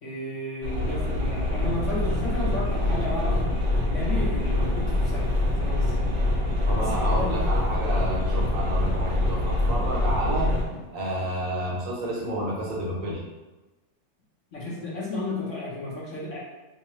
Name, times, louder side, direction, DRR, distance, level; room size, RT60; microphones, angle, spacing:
voice 1, 0.0-6.1 6.8-7.4 14.5-16.4, left 1 dB, 50° left, -7 dB, 0.9 m, -33 dB
sound 1, 0.6-10.6, left 1 dB, 85° right, 0.6 m, -25 dB
sound 2, 1.9-2.0 2.3-2.5 2.8-3.0 3.3-3.5 3.7-3.9 4.2-4.8 5.1-5.3 5.5-5.7 6.0-6.2 6.5-6.6 6.9-7.1 7.4-7.6 7.9-8.5 8.8-8.9 9.3-9.5 9.8-9.9 10.3-10.4 10.7-10.9 11.2-11.3 11.7-11.9 12.2-12.3 12.6-12.8 13.1-13.2, left 2 dB, 90° left, 0.5 m, -44 dB
voice 2, 6.6-10.5 10.9-13.2, right 1 dB, 50° right, -4 dB, 1.1 m, -30 dB
4.6 x 2.2 x 3.0 m, 1.1 s
omnidirectional pair, 2.2 m